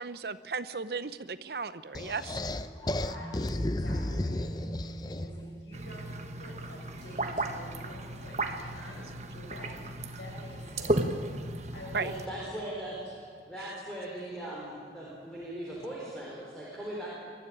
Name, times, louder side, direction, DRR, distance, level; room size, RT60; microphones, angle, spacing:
voice 1, 0.0-2.4 11.9-12.1 13.6-13.7, right 4 dB, 60° right, 14 dB, 0.7 m, -35 dB
sound 1, 1.9-5.5, left 1 dB, 20° left, 0.6 m, -33 dB
voice 2, 2.8-10.9 11.7-13.2, left 1 dB, 85° left, -2 dB, 7.5 m, -48 dB
sound 2, 3.2-12.7, right 2 dB, 20° right, 1.5 m, -48 dB
sound 3, 5.7-12.3, right 1 dB, 40° right, 1.3 m, -35 dB
voice 3, 12.0-17.2, right 1 dB, 5° left, -6 dB, 4.1 m, -39 dB
22.0 x 13.0 x 9.8 m, 2.2 s
head